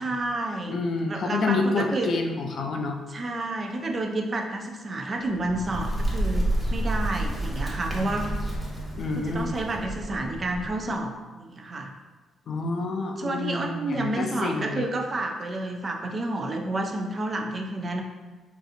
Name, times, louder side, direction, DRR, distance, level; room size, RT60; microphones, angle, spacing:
voice 1, 0.0-2.1 3.1-8.3 9.2-11.9 13.2-18.0, right 2 dB, 35° right, 3 dB, 0.4 m, -30 dB
voice 2, 0.7-3.0 9.0-9.6 12.5-14.9, left 3 dB, 55° left, 3 dB, 0.4 m, -28 dB
Bird, 5.2-10.9, right 1 dB, 5° right, 0.8 m, -30 dB
3.9 x 2.4 x 2.6 m, 1.3 s
cardioid pair, 90°, 0 cm